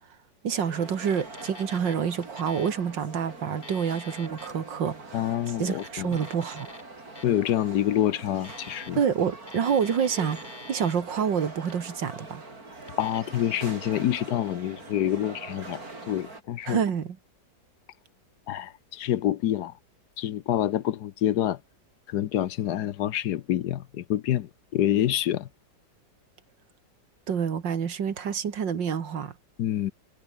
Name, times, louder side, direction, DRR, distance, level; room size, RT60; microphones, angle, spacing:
voice 1, 0.4-6.7 9.0-12.4 16.7-17.2 27.3-29.3, right 7 dB, 90° right, 2.5 m, -28 dB
sound 1, 0.6-16.4, right 2 dB, 55° right, 5.5 m, -43 dB
Alarm, 0.9-1.9 2.2-2.8 3.4-4.5 5.3-6.8 7.1-7.5 8.3-9.2 9.4-11.0 11.5-12.0 12.8-13.2, left 2 dB, 25° left, 2.6 m, -46 dB
voice 2, 5.1-6.1 7.2-9.0 13.0-15.8 16.1-16.8 18.5-19.7 20.2-21.6 22.1-25.5 29.6-29.9, left 12 dB, 70° left, 1.3 m, -27 dB
omnidirectional pair, 1.9 m